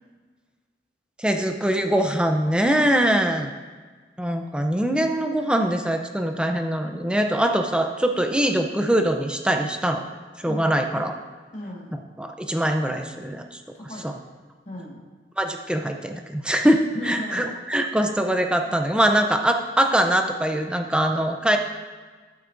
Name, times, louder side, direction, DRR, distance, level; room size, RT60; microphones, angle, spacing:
voice 1, 1.2-3.5 4.2-10.0 10.4-11.1 12.2-13.6 14.0-14.1 15.4-21.6, right 1 dB, 5° right, 5 dB, 0.6 m, -23 dB
voice 2, 10.5-10.9 11.5-12.0 13.7-14.2 14.7-15.0 16.9-17.4, left 1 dB, 35° left, -3 dB, 1.7 m, -36 dB
13.0 x 8.4 x 2.6 m, 1.4 s
head